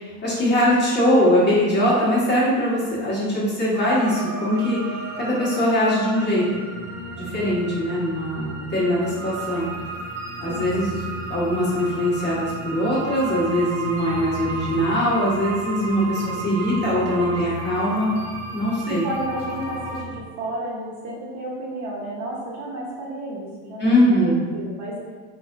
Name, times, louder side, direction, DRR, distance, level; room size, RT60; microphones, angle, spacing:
voice 1, 0.0-4.8 5.2-6.4 7.2-9.7 10.4-11.0 11.3-18.1 18.5-19.0 23.8-24.4, equal, 25° left, -8 dB, 1.3 m, -21 dB
sound 1, 3.7-20.1, right 3 dB, 80° right, 1.2 m, -33 dB
voice 2, 7.1-7.6 10.5-10.7 18.9-25.0, right 1 dB, 40° right, -5 dB, 1.1 m, -32 dB
4.1 x 3.2 x 2.6 m, 1.5 s
supercardioid pair, 120°, 44 cm